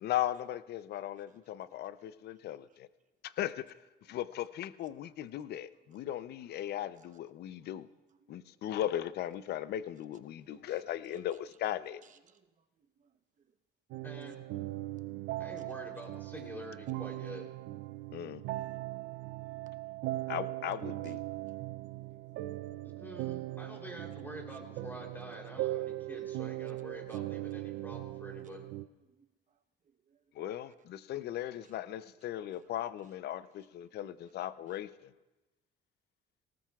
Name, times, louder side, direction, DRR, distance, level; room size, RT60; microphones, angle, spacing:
voice 1, 0.0-2.9 3.2-3.7 4.0-7.9 8.3-12.0 18.1-18.4 20.3-21.2 30.3-35.1, left 12 dB, 60° left, 15 dB, 0.5 m, -37 dB
voice 2, 5.0-5.4 5.9-6.0 7.0-7.1 8.1-8.6 10.4-10.8 11.1-11.2 12.0-13.5 14.1-14.3 14.7-15.6 18.4-19.0 19.4-20.3 21.0-22.5 24.5-24.6 27.1-27.2 28.4-28.5 29.0-30.2 30.6-30.7 31.3-31.8 32.5-32.8 33.8-34.4 34.7-34.8, right 7 dB, 40° right, 8 dB, 0.9 m, -68 dB
sound 1, 13.9-28.9, right 17 dB, 80° right, 0.5 m, -39 dB
voice 3, 14.0-14.4 15.4-17.4 22.8-28.7, equal, 10° left, 1 dB, 3.2 m, -47 dB
19.5 x 18.0 x 2.4 m, 1.1 s
cardioid pair, 120°, 19 cm